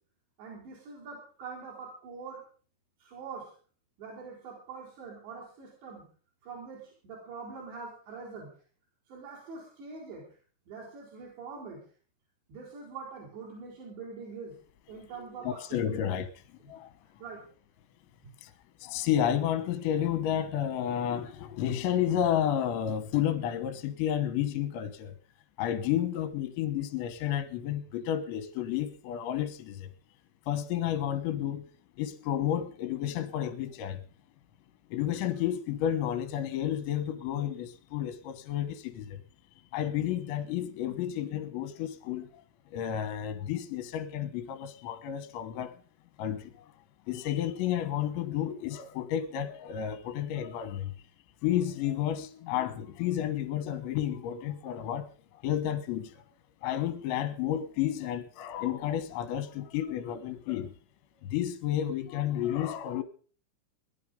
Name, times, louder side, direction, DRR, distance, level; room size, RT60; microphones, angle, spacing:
voice 1, 0.4-2.4 3.0-3.5 4.0-6.0 6.4-8.5 9.1-10.2 10.7-11.8 12.5-14.5 14.9-15.5 15.9-16.0 16.7-16.8 17.2-17.4, right 5 dB, 60° right, 7.0 m, -44 dB
voice 2, 15.5-16.3 16.6-16.9 18.4-18.5 18.8-25.2 25.6-29.9 30.5-31.7 32.0-34.0 34.9-39.2 39.7-42.4 42.7-45.8 46.2-46.7 47.1-50.9 51.4-56.2 56.6-60.8 61.2-63.0, left 10 dB, 75° left, 3.3 m, -31 dB
18.5 x 11.5 x 5.2 m
omnidirectional pair, 5.6 m